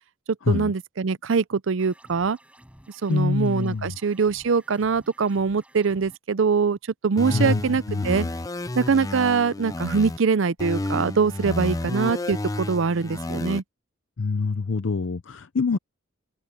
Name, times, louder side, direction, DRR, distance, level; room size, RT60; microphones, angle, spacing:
voice 1, 0.5-2.4 3.0-6.8 7.0-8.3 8.7-13.6, right 5 dB, 70° right, 0.5 m, -23 dB
sound 1, 1.8-6.2, equal, 5° right, 7.9 m, -52 dB
voice 2, 3.1-3.9 7.3-8.3 14.2-15.8, left 4 dB, 70° left, 0.6 m, -25 dB
sound 2, 7.2-10.2 10.6-13.6, left 2 dB, 15° left, 0.4 m, -30 dB
head